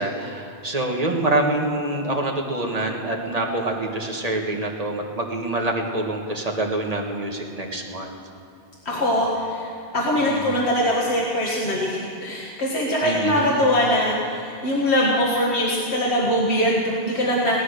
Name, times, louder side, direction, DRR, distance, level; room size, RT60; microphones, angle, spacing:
voice 1, 0.0-8.1 8.9-9.2 10.2-10.6 13.0-13.7, right 2 dB, 35° right, 0 dB, 1.7 m, -26 dB
voice 2, 8.9-17.6, equal, 90° left, -4 dB, 2.0 m, -22 dB
17.0 x 13.0 x 6.6 m, 2.4 s
omnidirectional pair, 1.1 m